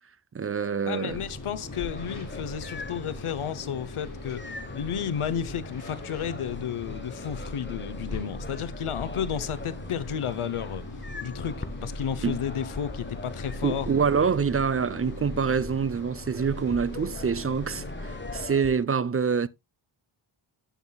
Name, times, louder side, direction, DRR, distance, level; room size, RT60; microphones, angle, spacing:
voice 1, 0.3-1.2 12.2-12.4 13.6-19.5, right 6 dB, 30° right, 0.4 m, -26 dB
voice 2, 0.9-10.8 11.2-13.9, left 8 dB, 80° left, 0.8 m, -32 dB
sound 1, 1.1-18.5, left 1 dB, 40° left, 3.8 m, -39 dB
sound 2, 1.7-18.8, left 3 dB, 20° left, 1.0 m, -43 dB
15.5 x 5.7 x 2.2 m
wide cardioid pair, 70°, 49 cm